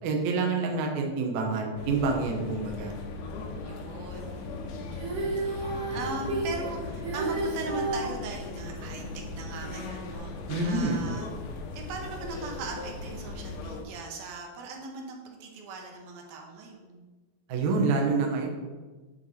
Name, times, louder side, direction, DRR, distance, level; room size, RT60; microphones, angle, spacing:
voice 1, 0.0-2.9 10.5-11.0 17.5-18.5, right 3 dB, 65° right, 1 dB, 2.1 m, -27 dB
sound 1, 1.8-13.8, left 3 dB, 75° left, 2.2 m, -38 dB
voice 2, 3.5-10.4 10.6-11.3 11.7-17.1, right 3 dB, 85° right, 1 dB, 2.9 m, -39 dB
Female singing, 4.9-8.2 10.1-10.2, right 2 dB, 45° right, 1.9 m, -31 dB
10.5 x 4.6 x 4.1 m, 1.3 s
omnidirectional pair, 4.2 m